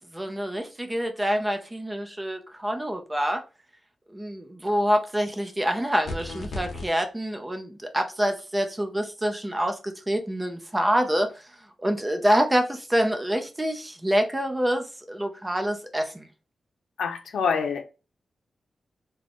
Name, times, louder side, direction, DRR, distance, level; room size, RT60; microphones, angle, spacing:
voice 1, 0.1-3.4 4.1-11.4 11.8-16.3, equal, 15° right, 0.6 m, -26 dB
sound 1, 6.1-6.9, left 2 dB, 55° left, 1.0 m, -34 dB
voice 2, 17.0-17.8, left 6 dB, 80° left, 0.6 m, -26 dB
3.8 x 2.2 x 3.5 m
wide cardioid pair, 110°, 0 cm